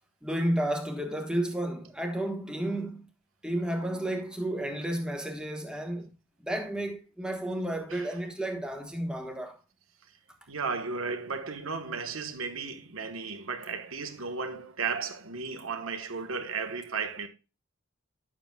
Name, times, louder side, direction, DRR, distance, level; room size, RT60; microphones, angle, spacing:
voice 1, 0.2-3.1 3.4-6.1 6.4-9.6, right 1 dB, 5° right, 1.2 m, -32 dB
voice 2, 10.5-17.3, right 5 dB, 80° right, 1.3 m, -34 dB
11.0 x 7.3 x 2.3 m
head